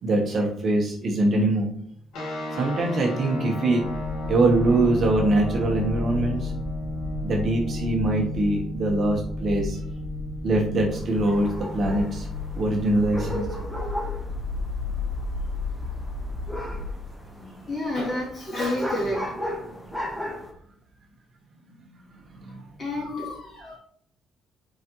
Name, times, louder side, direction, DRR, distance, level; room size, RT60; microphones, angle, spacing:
voice 1, 0.0-1.7 2.5-3.8 4.3-6.5 7.2-9.8 10.4-11.5 11.7-12.3 12.5-13.5 22.4-22.6, right 2 dB, 40° right, 0 dB, 1.2 m, -23 dB
sound 1, 2.1-13.3, left 1 dB, 90° left, 2.0 m, -34 dB
sound 2, 3.8-16.9, left 3 dB, 50° left, 2.4 m, -33 dB
sound 3, 10.9-20.5, equal, 5° left, 1.0 m, -36 dB
voice 2, 17.3-19.3 22.8-23.8, left 1 dB, 35° left, -5 dB, 2.8 m, -30 dB
8.2 x 5.0 x 3.1 m, 0.67 s
cardioid pair, 160°, 0 cm